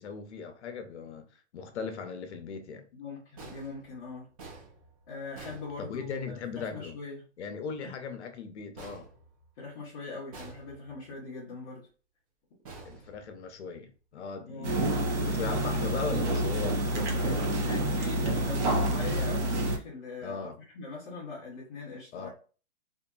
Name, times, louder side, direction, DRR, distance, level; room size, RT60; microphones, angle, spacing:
voice 1, 0.0-2.8 5.8-7.0 7.4-9.1 12.8-17.5 20.2-20.6 22.1-22.3, left 5 dB, 60° left, 0.7 m, -38 dB
voice 2, 2.9-4.3 5.1-7.2 7.8-7.9 9.6-11.9 14.5-14.8 17.5-22.3, left 3 dB, 20° left, 0.6 m, -41 dB
sound 1, 3.4-6.4 8.8-9.8 10.3-11.1 12.6-13.7, right 3 dB, 30° right, 0.7 m, -49 dB
sound 2, 14.6-19.8, right 1 dB, 65° right, 0.9 m, -28 dB
2.8 x 2.6 x 2.3 m
hypercardioid pair, 160°, 38 cm